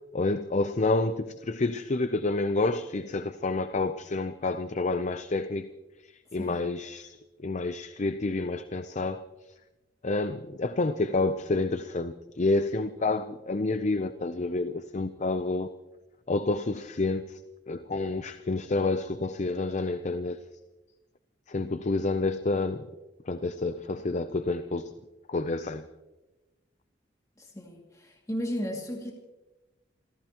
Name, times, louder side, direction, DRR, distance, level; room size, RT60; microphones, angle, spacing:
voice 1, 0.1-5.7 6.3-7.2 7.4-9.2 10.0-15.7 16.3-17.4 17.7-20.4 21.5-22.9 23.3-24.9 25.3-25.9, left 2 dB, 40° left, 0.6 m, -29 dB
voice 2, 27.4-29.1, equal, 20° left, 2.4 m, -34 dB
27.5 x 15.5 x 3.0 m
head